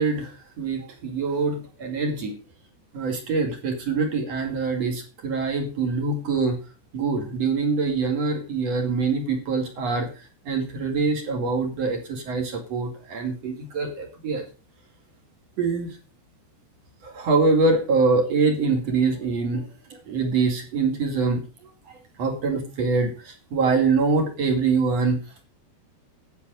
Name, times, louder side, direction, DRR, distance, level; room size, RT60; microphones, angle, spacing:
voice 1, 0.0-2.4 2.9-6.6 6.9-10.1 10.5-14.4 15.6-15.9 17.0-19.7 20.1-21.4 22.2-25.2, right 4 dB, 45° right, 3 dB, 2.8 m, -24 dB
10.5 x 8.2 x 6.3 m, 0.35 s
omnidirectional pair, 5.0 m